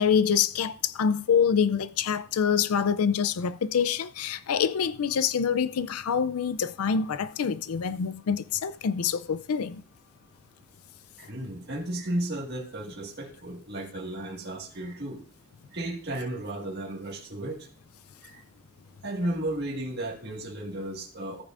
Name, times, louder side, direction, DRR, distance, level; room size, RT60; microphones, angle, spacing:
voice 1, 0.0-9.8, left 7 dB, 80° left, 0.4 m, -26 dB
voice 2, 11.2-15.2 15.7-17.7 18.2-18.4 19.0-21.4, right 1 dB, 45° right, 1.8 m, -34 dB
14.0 x 8.7 x 2.5 m
head